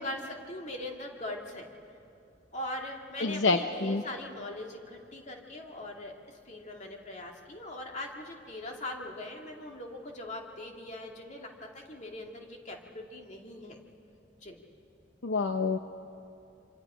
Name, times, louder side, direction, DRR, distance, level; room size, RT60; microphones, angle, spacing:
voice 1, 0.0-1.7 2.5-6.1 6.5-13.8 14.4-14.6, left 1 dB, 40° left, 1 dB, 2.3 m, -41 dB
voice 2, 3.2-4.0 15.2-15.8, left 3 dB, 70° left, 7 dB, 0.7 m, -27 dB
26.5 x 26.0 x 5.0 m, 2.6 s
head